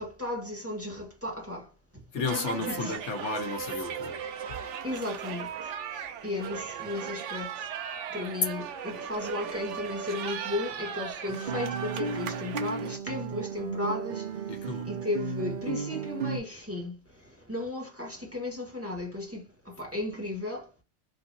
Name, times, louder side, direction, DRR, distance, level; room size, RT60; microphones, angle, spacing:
voice 1, 0.0-1.7 2.3-2.9 4.8-5.5 5.9-7.7 8.1-14.3 14.6-17.0 17.5-20.7, left 2 dB, 10° right, 1.5 m, -35 dB
voice 2, 2.1-4.2 14.5-14.9, left 4 dB, 75° left, 1.3 m, -33 dB
sound 1, 2.2-13.0, right 8 dB, 80° right, 0.9 m, -37 dB
Guitar, 11.3-16.4, right 5 dB, 50° right, 0.8 m, -34 dB
3.7 x 2.8 x 2.7 m
omnidirectional pair, 1.2 m